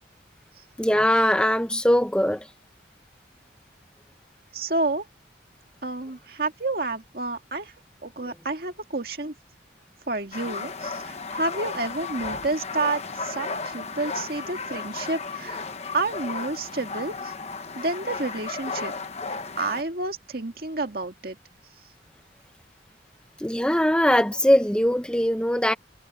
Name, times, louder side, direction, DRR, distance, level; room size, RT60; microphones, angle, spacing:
voice 1, 0.8-2.5 8.2-8.3 23.4-25.7, equal, 5° left, 1.2 m, -21 dB
voice 2, 4.5-5.1 5.8-7.7 8.0-9.3 10.1-15.6 15.9-17.3 17.8-18.9 19.6-21.4, right 2 dB, 55° right, 2.0 m, -29 dB
sound 1, 10.3-19.8, left 4 dB, 35° left, 1.1 m, -34 dB
head